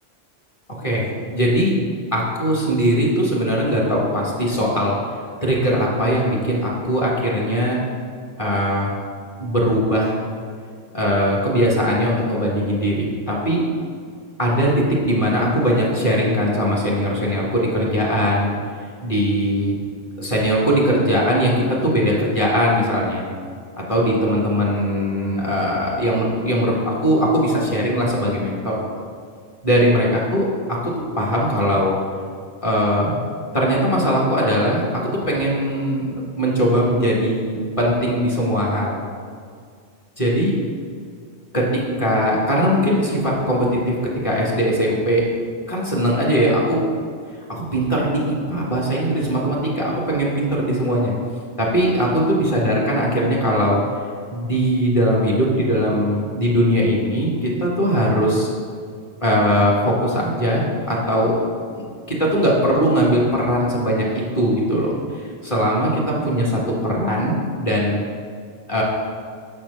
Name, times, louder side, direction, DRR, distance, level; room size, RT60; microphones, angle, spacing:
voice 1, 0.8-1.7 2.1-5.0 5.4-7.8 8.4-8.9 9.4-10.2 10.9-13.6 14.4-18.5 19.0-19.7 20.2-23.2 23.9-28.8 29.6-30.5 30.8-31.9 32.6-33.2 33.5-35.0 35.3-39.0 40.2-40.5 41.5-45.3 45.7-46.8 47.5-51.1 51.6-53.8 54.3-58.5 59.2-61.4 61.7-64.0 64.3-68.0 68.7-68.8, equal, 25° left, -5 dB, 1.4 m, -20 dB
6.8 x 4.4 x 5.4 m, 2.1 s
omnidirectional pair, 1.3 m